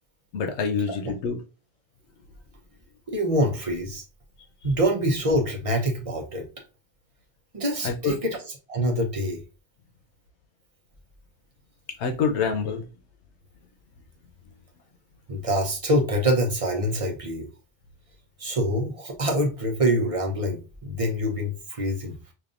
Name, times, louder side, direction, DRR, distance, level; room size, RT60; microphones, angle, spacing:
voice 1, 0.3-1.4 7.8-8.1 12.0-12.8, left 5 dB, 90° left, 1.0 m, -26 dB
voice 2, 3.1-4.0 4.6-6.5 7.5-8.4 8.7-9.4 15.3-17.5 18.4-22.1, equal, 35° right, 0.7 m, -25 dB
5.1 x 2.6 x 2.4 m
omnidirectional pair, 1.1 m